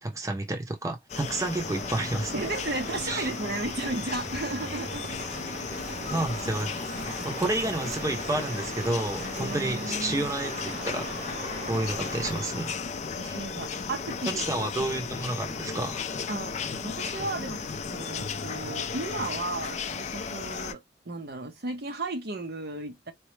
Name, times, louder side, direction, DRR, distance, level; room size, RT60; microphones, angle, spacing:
voice 1, 0.0-2.3 3.1-3.3 6.1-6.7 7.2-11.1 11.7-12.7 13.2-13.4 14.4-16.0, right 2 dB, 20° right, 0.7 m, -30 dB
sound 1, 1.1-20.7, left 5 dB, 40° left, 0.4 m, -35 dB
Crow, 1.3-12.8, right 2 dB, 45° right, 1.0 m, -40 dB
voice 2, 2.3-5.0 9.2-10.3 13.2-14.9 16.3-16.5 16.8-23.1, right 2 dB, 65° right, 0.9 m, -35 dB
4.5 x 2.1 x 3.2 m
head